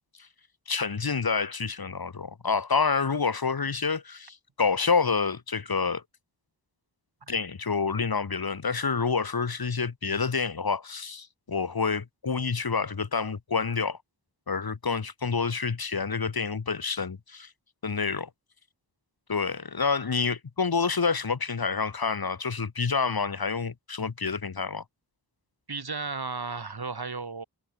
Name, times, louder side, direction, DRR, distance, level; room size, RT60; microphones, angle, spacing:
voice 1, 0.7-6.0 7.3-14.0 14.5-17.5 17.8-18.3 19.3-24.8, left 5 dB, 65° left, 2.1 m, -28 dB
voice 2, 25.7-27.4, right 4 dB, 65° right, 5.2 m, -34 dB
wide cardioid pair, 55°, 40 cm